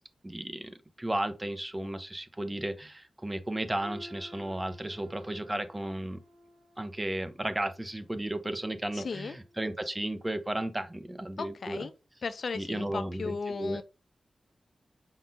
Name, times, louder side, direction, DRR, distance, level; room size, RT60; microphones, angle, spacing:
voice 1, 0.2-6.2 6.8-11.8 12.5-13.8, right 1 dB, 15° right, 0.5 m, -34 dB
sound 1, 3.8-9.7 10.1-10.4 11.1-11.2, equal, 70° right, 1.3 m, -54 dB
voice 2, 8.9-9.4 11.4-11.9 12.2-13.8, left 4 dB, 60° left, 0.4 m, -36 dB
5.3 x 3.7 x 2.6 m
wide cardioid pair, 110°, 0 cm